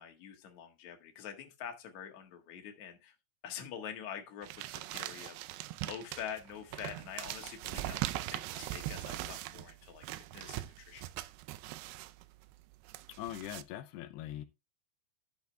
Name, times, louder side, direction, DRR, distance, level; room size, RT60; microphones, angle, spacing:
voice 1, 0.0-3.1 3.4-10.1 10.3-11.1, left 8 dB, 55° left, 2.8 m, -46 dB
sound 1, 4.4-13.6, right 16 dB, 85° right, 2.7 m, -41 dB
voice 2, 13.2-14.5, left 13 dB, 85° left, 2.8 m, -42 dB
12.0 x 6.8 x 3.4 m
omnidirectional pair, 4.6 m